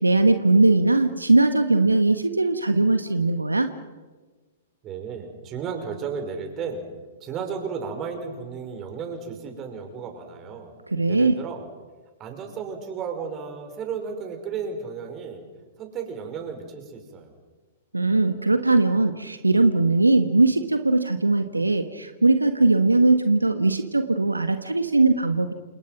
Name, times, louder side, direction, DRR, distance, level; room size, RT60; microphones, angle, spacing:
voice 1, 0.0-3.7 10.9-11.4 17.9-25.5, right 2 dB, 85° right, 9 dB, 1.5 m, -20 dB
voice 2, 4.8-6.8 7.2-10.7 11.1-11.7 12.2-15.4 15.8-17.3, right 6 dB, 25° right, 5 dB, 5.7 m, -33 dB
29.0 x 28.5 x 6.1 m, 1.3 s
figure-of-eight pair, 110°, 0 cm